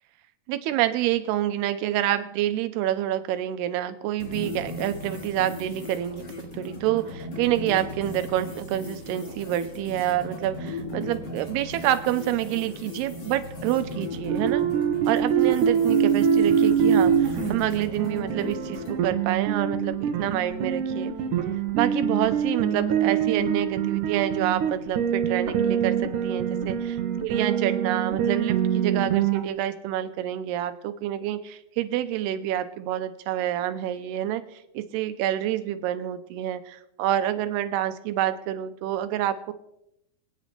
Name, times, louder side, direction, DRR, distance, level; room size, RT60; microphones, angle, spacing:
voice 1, 0.5-14.6 15.1-21.1 21.7-34.4 34.7-39.5, right 12 dB, 85° right, 11 dB, 2.8 m, -27 dB
sound 1, 4.2-19.0, left 1 dB, 30° left, 2.6 m, -37 dB
sound 2, 14.3-29.4, right 8 dB, 65° right, 2.3 m, -24 dB
26.5 x 9.3 x 3.3 m, 0.81 s
omnidirectional pair, 4.5 m